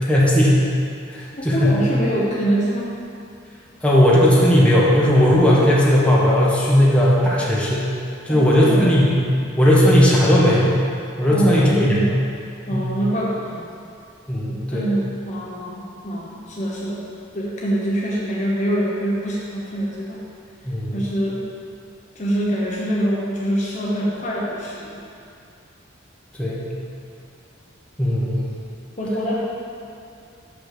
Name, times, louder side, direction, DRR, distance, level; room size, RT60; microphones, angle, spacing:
voice 1, 0.1-0.6 1.1-1.8 3.8-7.9 8.2-9.1 9.6-10.7 11.2-12.0 12.7-12.8 14.3-14.9 20.6-20.9 26.4-26.7 28.0-28.5, equal, 5° left, -7 dB, 1.3 m, -16 dB
voice 2, 1.3-2.9 8.3-8.9 11.3-12.1 12.7-13.7 14.4-17.0 17.3-20.2 20.9-21.4 22.1-25.0 29.0-29.4, right 1 dB, 35° left, -5 dB, 0.9 m, -24 dB
6.4 x 5.8 x 6.7 m, 2.5 s
head